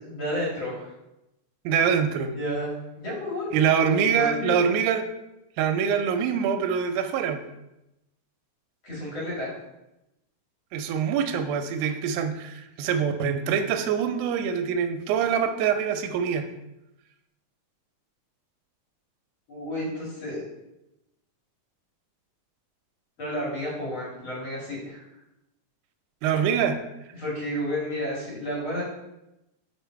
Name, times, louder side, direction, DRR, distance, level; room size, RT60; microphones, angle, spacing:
voice 1, 0.0-0.9 2.3-4.5 8.8-9.5 19.5-20.4 23.2-25.0 27.1-28.8, equal, 45° left, -6 dB, 2.6 m, -31 dB
voice 2, 1.7-2.3 3.5-5.1 5.6-7.4 10.7-16.5 26.2-26.8, right 7 dB, 90° right, 7 dB, 2.1 m, -24 dB
5.0 x 4.9 x 4.5 m, 0.92 s
omnidirectional pair, 3.4 m